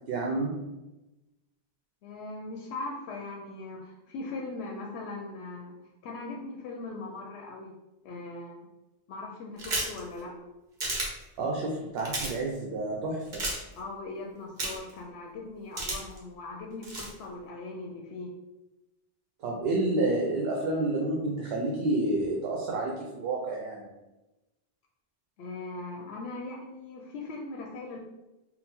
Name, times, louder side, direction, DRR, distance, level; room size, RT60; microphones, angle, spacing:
voice 1, 0.1-0.6 11.4-13.4 19.4-23.9, right 2 dB, 70° right, -1 dB, 0.8 m, -29 dB
voice 2, 2.0-5.7 6.0-7.7 8.0-8.7 9.1-10.3 13.8-18.3 25.4-28.0, left 3 dB, 85° left, -1 dB, 0.8 m, -40 dB
sound 1, 9.6-10.0 10.8-11.1 12.0-12.3 13.3-13.6 14.6-14.9 15.8-16.2 16.8-17.1, right 2 dB, 50° right, 1.0 m, -31 dB
3.9 x 2.1 x 4.2 m, 1.0 s
omnidirectional pair, 1.1 m